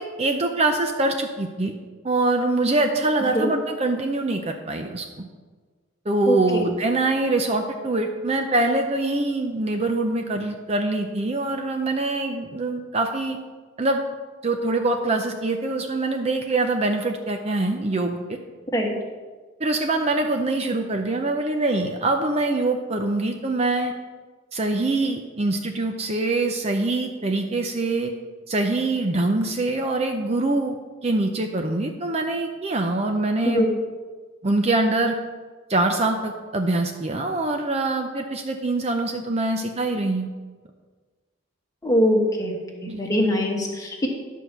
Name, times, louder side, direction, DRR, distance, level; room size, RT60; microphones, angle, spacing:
voice 1, 0.0-1.7 2.0-5.3 6.1-13.4 13.8-14.0 14.4-18.4 19.6-23.9 24.5-28.1 28.5-30.8 31.0-33.7 34.4-35.2 35.7-40.3 42.9-43.1, right 2 dB, 30° right, 4 dB, 0.6 m, -24 dB
voice 2, 6.3-6.6 18.7-18.9 33.4-33.7 41.8-44.1, equal, 15° left, 0 dB, 1.3 m, -22 dB
11.0 x 4.6 x 6.7 m, 1.4 s
head